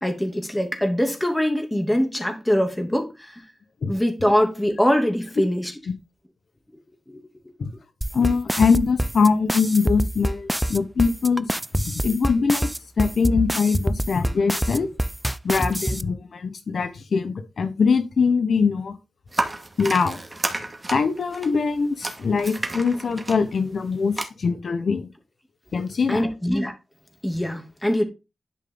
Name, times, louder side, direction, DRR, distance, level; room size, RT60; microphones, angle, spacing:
voice 1, 0.0-3.5 3.9-5.7 7.1-7.2 26.1-26.7 27.2-28.0, equal, 10° left, 2.7 m, -23 dB
sound 1, 8.0-16.0, equal, 5° right, 0.5 m, -25 dB
voice 2, 8.1-11.5 11.8-12.7 13.0-14.9 15.4-19.0 19.8-20.2 20.9-25.1 25.7-26.2, left 5 dB, 70° left, 1.1 m, -22 dB
sound 2, 19.3-24.2, right 2 dB, 25° right, 2.1 m, -31 dB
11.5 x 5.6 x 3.9 m
cardioid pair, 60°, 0 cm